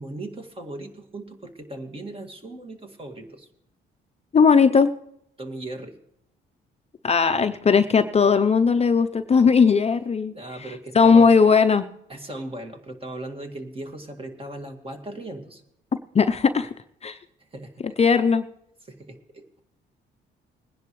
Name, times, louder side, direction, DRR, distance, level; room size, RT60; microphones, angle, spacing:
voice 1, 0.0-3.5 5.4-6.0 10.3-11.3 12.1-15.6 17.4-18.0 18.8-19.6, right 1 dB, 30° right, 4 dB, 2.1 m, -38 dB
voice 2, 4.3-4.9 7.0-10.3 10.9-11.9 16.1-16.7 17.0-17.2 18.0-18.5, left 5 dB, 30° left, 8 dB, 0.6 m, -18 dB
21.0 x 10.5 x 3.2 m, 0.75 s
cardioid pair, 90°, 20 cm